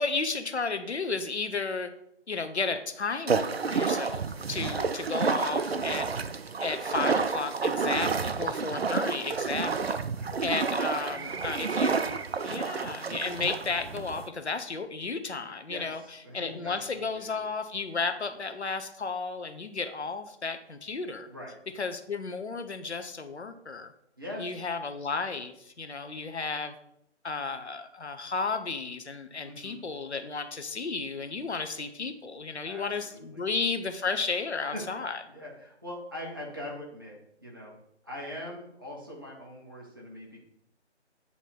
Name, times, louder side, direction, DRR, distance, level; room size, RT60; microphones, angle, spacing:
voice 1, 0.0-1.9 2.3-4.2 4.5-6.1 6.6-10.0 10.4-12.1 12.4-21.3 21.8-23.9 24.4-26.7 27.2-35.2, left 4 dB, 70° left, 8 dB, 0.7 m, -33 dB
sound 1, 3.3-14.3, right 5 dB, 60° right, 0.5 m, -30 dB
voice 2, 4.6-5.0 10.1-10.6 10.9-11.8 15.7-17.4 21.3-21.6 24.2-24.6 29.4-29.8 32.6-33.4 34.7-34.8 35.3-37.8 38.0-40.4, left 1 dB, 20° right, -4 dB, 0.8 m, -42 dB
8.3 x 2.9 x 4.3 m, 0.75 s
figure-of-eight pair, 155°, 35 cm